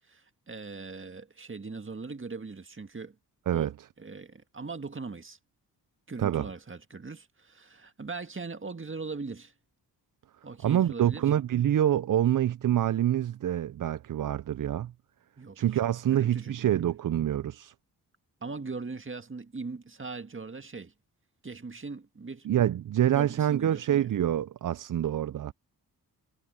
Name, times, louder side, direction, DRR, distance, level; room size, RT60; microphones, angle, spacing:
voice 1, 0.1-3.2 3.5-3.7 4.0-5.4 6.1-9.5 10.4-11.2 15.4-16.7 18.4-20.9 21.4-22.5 23.1-24.1, right 4 dB, 30° right, 1.9 m, -40 dB
voice 2, 10.6-14.9 15.6-17.7 22.4-25.5, right 11 dB, 55° right, 0.6 m, -26 dB
cardioid pair, 50°, 39 cm